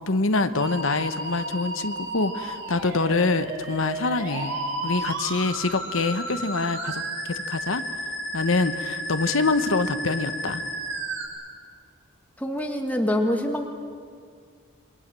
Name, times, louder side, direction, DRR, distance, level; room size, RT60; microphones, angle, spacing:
voice 1, 0.1-4.6 4.8-7.0 7.3-7.8 8.3-10.6, left 3 dB, 75° left, 10 dB, 1.1 m, -25 dB
Musical instrument, 0.6-11.3, right 1 dB, 60° right, 4.7 m, -33 dB
voice 2, 12.4-13.7, left 1 dB, 5° left, 3 dB, 1.7 m, -25 dB
28.0 x 23.0 x 7.6 m, 2.1 s
head